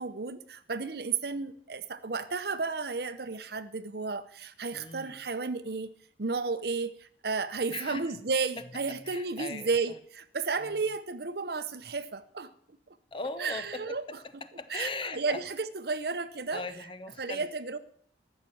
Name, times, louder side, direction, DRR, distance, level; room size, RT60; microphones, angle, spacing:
voice 1, 0.0-5.9 6.2-12.5 13.4-14.0 14.7-16.6 17.2-17.8, right 4 dB, 60° right, 13 dB, 0.8 m, -33 dB
voice 2, 4.7-5.2 7.7-8.2 8.6-10.0 10.6-10.8 13.1-15.4 16.5-17.5, left 3 dB, 30° left, 11 dB, 0.7 m, -40 dB
14.0 x 6.6 x 7.2 m, 0.64 s
head